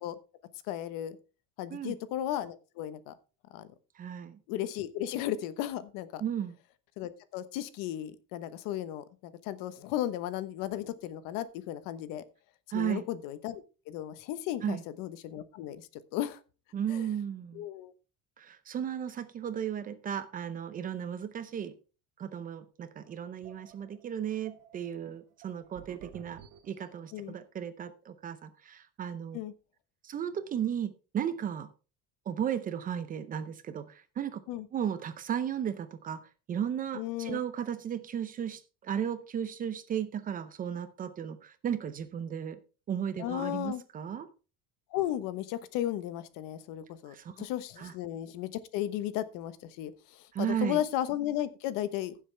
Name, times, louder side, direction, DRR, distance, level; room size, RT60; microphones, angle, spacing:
voice 1, 0.7-1.2 1.6-3.1 3.5-3.7 4.5-6.2 7.0-12.2 12.7-16.4 16.9-17.1 17.5-17.9 27.1-27.3 29.3-29.5 34.5-34.7 36.9-37.4 43.2-43.8 44.9-52.2, left 12 dB, 70° left, 14 dB, 1.1 m, -35 dB
voice 2, 4.0-4.4 6.2-6.5 12.7-13.0 14.6-14.8 16.7-17.6 18.4-21.7 22.2-29.4 30.0-31.7 32.3-34.4 34.7-36.2 36.5-42.6 42.9-44.3 47.1-47.4 47.8-47.9 50.3-50.8, right 9 dB, 25° right, 12 dB, 0.6 m, -35 dB
sound 1, 23.0-27.3, right 10 dB, 75° right, 1.8 m, -53 dB
15.5 x 7.3 x 3.3 m, 0.33 s
cardioid pair, 180°, 34 cm